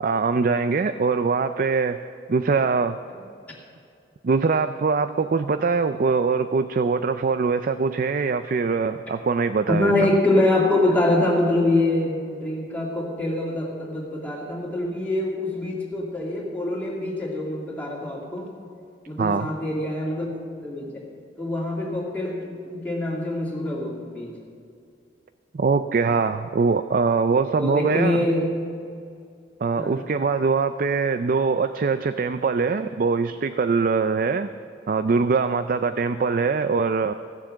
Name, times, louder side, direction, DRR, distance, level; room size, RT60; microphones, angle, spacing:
voice 1, 0.0-2.0 2.3-3.0 4.2-9.9 19.2-19.5 25.5-28.2 29.6-34.5 34.9-37.1, right 4 dB, 50° right, 10 dB, 0.4 m, -22 dB
voice 2, 9.7-18.5 19.1-20.3 20.6-21.0 21.4-24.3 27.6-28.7 29.8-30.1, left 2 dB, 10° left, -4 dB, 2.5 m, -24 dB
16.0 x 7.3 x 7.5 m, 2.4 s
head